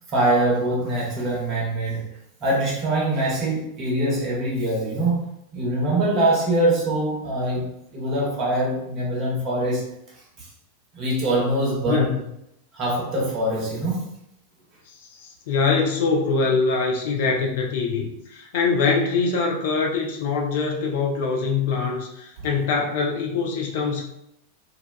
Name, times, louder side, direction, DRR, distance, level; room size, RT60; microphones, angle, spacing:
voice 1, 0.1-2.1 2.4-9.8 10.4-10.5 10.9-12.1 12.7-14.1, right 1 dB, 35° right, -4 dB, 1.0 m, -23 dB
voice 2, 14.9-24.1, left 4 dB, 55° left, 1 dB, 0.4 m, -23 dB
2.6 x 2.2 x 2.2 m, 0.78 s
figure-of-eight pair, 90°, 0 cm